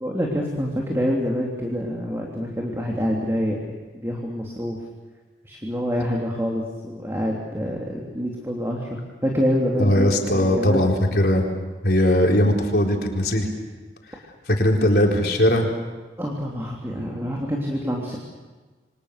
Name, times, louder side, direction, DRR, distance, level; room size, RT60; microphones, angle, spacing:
voice 1, 0.0-3.6 3.9-4.8 5.4-10.9 16.2-18.2, equal, 15° right, -1 dB, 3.0 m, -26 dB
voice 2, 9.8-11.5 11.8-13.5 14.5-15.7, left 1 dB, 60° left, 0 dB, 4.3 m, -19 dB
28.5 x 25.0 x 6.7 m, 1.3 s
head